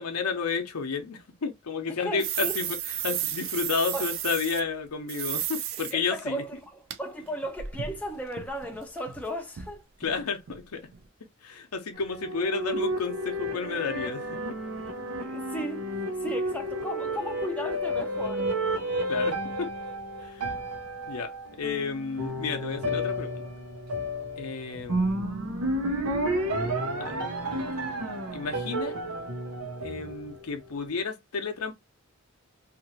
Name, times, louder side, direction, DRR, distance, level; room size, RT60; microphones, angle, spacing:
voice 1, 0.0-6.4 10.0-10.9 11.4-14.6 19.1-19.7 20.2-20.5 21.1-23.4 24.4-25.3 27.0-27.9 28.3-29.0 29.8-31.7, left 5 dB, 85° left, 0.6 m, -32 dB
voice 2, 2.0-2.6 3.9-4.1 5.9-9.8 15.2-15.9 16.2-18.5, equal, 5° left, 0.4 m, -35 dB
sound 1, 2.2-4.6 5.1-5.9 6.2-6.3 6.9-7.0 7.2-9.3 9.6-9.7 10.0-10.1 10.5-10.6 10.9-11.0, right 10 dB, 60° right, 0.4 m, -33 dB
sound 2, 12.0-30.5, right 1 dB, 85° right, 0.8 m, -31 dB
2.9 x 2.5 x 2.7 m
head